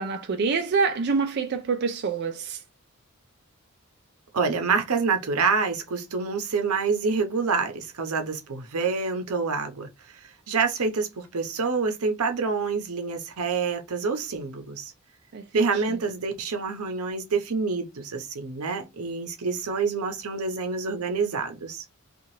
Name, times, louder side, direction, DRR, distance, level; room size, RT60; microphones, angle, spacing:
voice 1, 0.0-2.6 15.3-15.8, right 5 dB, 50° right, 0.4 m, -26 dB
voice 2, 4.3-9.9 10.5-14.9 15.5-21.8, right 4 dB, 90° right, 0.7 m, -27 dB
2.8 x 2.4 x 2.9 m
head